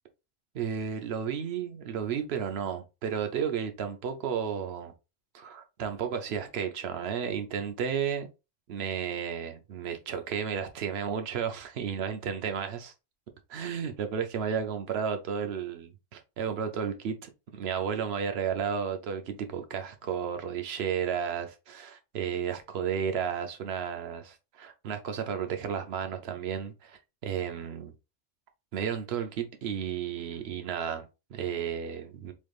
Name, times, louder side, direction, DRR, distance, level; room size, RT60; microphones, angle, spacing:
voice 1, 0.5-4.9 5.3-8.3 8.7-12.9 13.5-27.9 28.7-32.3, right 7 dB, 65° right, 0.9 m, -33 dB
3.4 x 3.1 x 2.3 m
omnidirectional pair, 1.2 m